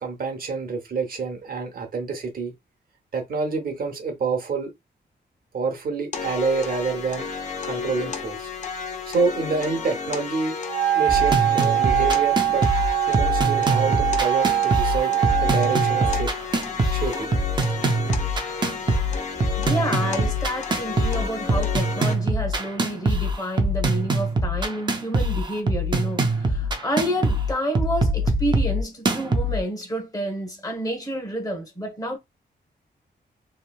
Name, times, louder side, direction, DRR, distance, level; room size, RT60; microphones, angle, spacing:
voice 1, 0.0-2.5 3.1-4.7 5.5-7.2 7.6-8.5 9.1-10.6 10.9-12.6 13.0-15.1 15.4-16.3 16.9-17.3, right 4 dB, 55° right, 0.8 m, -27 dB
sound 1, 6.1-22.1, left 5 dB, 45° left, 0.6 m, -32 dB
Wind instrument woodwind instrument, 10.7-16.3, right 14 dB, 85° right, 0.5 m, -23 dB
sound 2, 11.1-29.6, right 1 dB, 25° right, 0.4 m, -24 dB
voice 2, 19.6-32.2, right 1 dB, 20° left, 1.0 m, -29 dB
3.0 x 2.7 x 2.3 m
wide cardioid pair, 180°, 18 cm